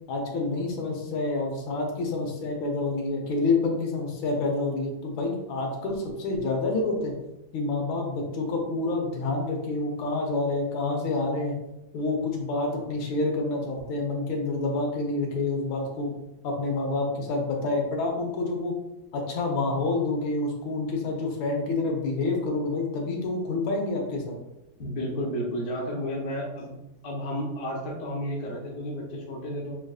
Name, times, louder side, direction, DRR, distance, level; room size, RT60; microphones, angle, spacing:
voice 1, 0.1-7.1 7.5-11.6 11.9-16.1 16.4-18.8 19.1-24.4, left 3 dB, 80° left, 1 dB, 1.6 m, -28 dB
voice 2, 24.8-26.7 27.0-29.7, equal, 45° left, -4 dB, 1.1 m, -32 dB
6.2 x 2.5 x 2.3 m, 0.92 s
omnidirectional pair, 2.2 m